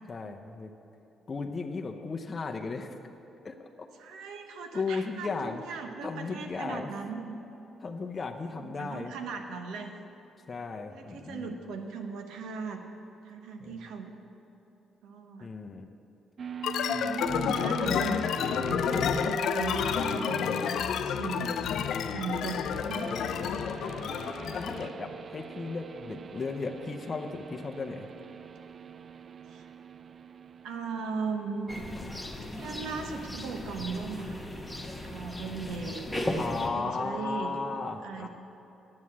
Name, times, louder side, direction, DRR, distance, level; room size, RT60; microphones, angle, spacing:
voice 1, 0.1-0.7 1.3-2.9 3.4-3.9 4.7-5.6 6.0-6.9 7.8-9.1 10.5-11.5 13.6-13.8 15.4-15.9 16.9-17.1 21.3-21.8 22.9-24.2 24.5-28.1 36.3-38.3, left 4 dB, 35° left, 3 dB, 0.7 m, -36 dB
voice 2, 4.0-7.4 8.5-9.9 10.9-12.8 13.2-14.1 15.0-15.5 16.9-20.4 21.0-21.6 22.1-23.4 29.5-29.7 30.6-31.8 32.5-34.5 35.0-36.1 36.7-37.6 38.0-38.3, right 5 dB, 85° right, 5 dB, 1.0 m, -38 dB
sound 1, 16.4-32.1, right 6 dB, 50° right, 0.3 m, -41 dB
sound 2, 16.6-24.9, left 8 dB, 75° left, 0.4 m, -30 dB
sound 3, 31.7-36.7, left 1 dB, 5° left, 1.3 m, -36 dB
9.6 x 7.7 x 7.4 m, 3.0 s
cardioid pair, 90°, 0 cm